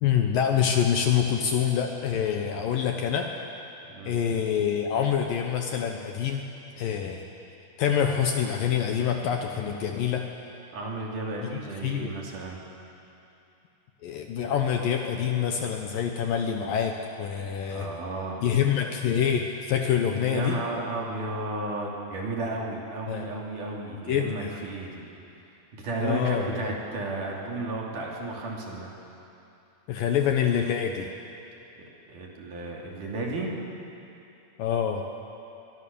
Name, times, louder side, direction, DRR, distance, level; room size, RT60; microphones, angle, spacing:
voice 1, 0.0-3.3 4.0-6.4 6.8-7.2 7.8-10.3 11.4-12.1 14.0-17.9 18.4-20.6 23.1-23.3 23.9-24.5 26.0-26.7 29.9-31.1 34.6-35.0, left 8 dB, 70° left, 3 dB, 2.4 m, -26 dB
voice 2, 3.9-4.2 10.7-12.6 17.7-18.4 20.3-25.0 25.7-28.9 32.1-33.5, right 2 dB, 50° right, -2 dB, 4.1 m, -33 dB
23.5 x 23.0 x 7.0 m, 2.8 s
omnidirectional pair, 4.8 m